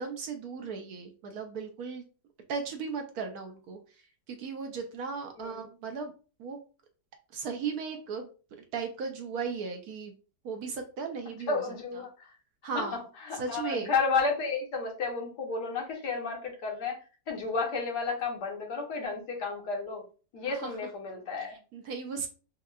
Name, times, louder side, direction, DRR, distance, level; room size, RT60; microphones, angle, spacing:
voice 1, 0.0-2.0 2.5-3.8 4.3-6.1 6.4-6.6 7.3-8.3 8.7-10.1 10.4-11.6 12.6-13.0 13.4-13.9 20.5-20.7 21.7-22.3, right 5 dB, 65° right, 4 dB, 1.1 m, -36 dB
voice 2, 11.5-12.4 12.7-17.0 17.3-20.1 20.3-21.6, left 4 dB, 70° left, 1 dB, 1.6 m, -32 dB
5.3 x 2.3 x 2.3 m, 0.35 s
omnidirectional pair, 1.9 m